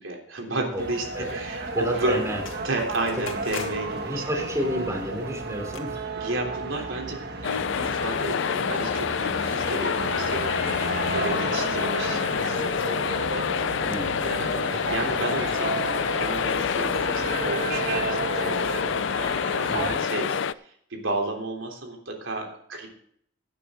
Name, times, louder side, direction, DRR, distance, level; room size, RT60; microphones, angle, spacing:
voice 1, 0.0-2.1 2.6-4.4 6.2-10.5 11.1-18.8 19.1-22.9, right 2 dB, 85° right, 1 dB, 3.4 m, -32 dB
sound 1, 0.8-5.8, left 5 dB, 80° left, 2.0 m, -44 dB
sound 2, 0.8-19.9, right 3 dB, 55° right, 1.6 m, -33 dB
voice 2, 1.7-2.4 3.1-3.2 4.0-6.1 6.7-6.8 13.9-14.2 19.7-20.0, equal, 15° right, 2 dB, 3.1 m, -30 dB
sound 3, 7.4-20.5, left 7 dB, 65° left, 0.5 m, -27 dB
17.0 x 9.8 x 3.7 m, 0.67 s
head